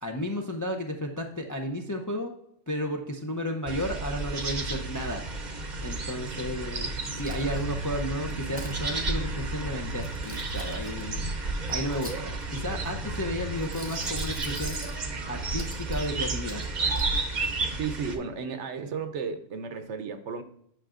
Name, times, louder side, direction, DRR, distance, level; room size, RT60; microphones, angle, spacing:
voice 1, 0.0-2.3 2.7-5.2 5.8-11.3 11.7-14.8 15.3-16.6, equal, 25° left, 0.4 m, -33 dB
sound 1, 3.7-18.2, right 3 dB, 45° right, 0.8 m, -32 dB
Coin (dropping), 7.2-7.8 8.3-8.8 9.9-11.0 11.7-12.6 13.5-15.0 15.6-16.1 16.5-17.1, right 1 dB, 10° right, 0.9 m, -44 dB
voice 2, 17.8-20.4, right 5 dB, 70° right, 1.0 m, -34 dB
9.0 x 5.9 x 2.4 m
omnidirectional pair, 1.3 m